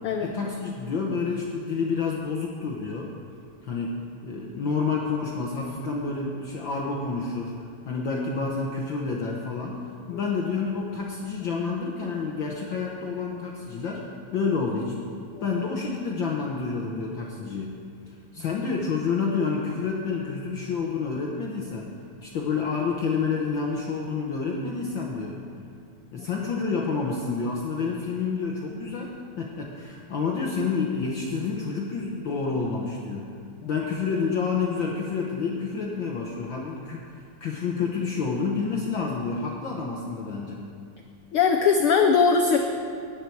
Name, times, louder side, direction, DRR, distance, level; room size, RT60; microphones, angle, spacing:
voice 1, 0.2-3.1 3.6-4.0 4.2-7.5 7.8-9.8 10.1-14.1 14.3-15.0 15.4-17.7 18.1-21.9 22.2-25.4 26.1-33.3 33.6-40.7, left 4 dB, 60° left, -1 dB, 1.3 m, -29 dB
voice 2, 41.3-42.6, left 5 dB, 90° left, 4 dB, 1.2 m, -20 dB
17.5 x 10.0 x 4.6 m, 2.4 s
omnidirectional pair, 3.4 m